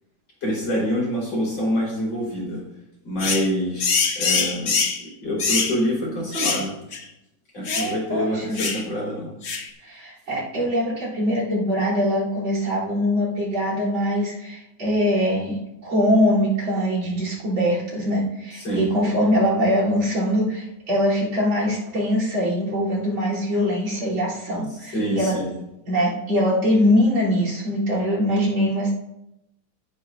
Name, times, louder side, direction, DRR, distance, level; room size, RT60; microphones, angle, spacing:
voice 1, 0.4-2.6 3.0-6.7 7.5-9.3 18.6-18.9 24.9-25.5, equal, 80° left, -3 dB, 5.1 m, -26 dB
sound 1, 3.2-3.5 3.8-5.0 5.4-5.8 6.3-6.7 6.9-7.0 7.7-7.9 8.6-8.8 9.4-9.7, left 5 dB, 45° left, 1.0 m, -23 dB
voice 2, 7.7-8.7 9.8-15.6 15.8-25.4 25.9-28.9, equal, 75° right, -4 dB, 4.4 m, -22 dB
17.0 x 10.0 x 2.6 m, 0.86 s
omnidirectional pair, 2.1 m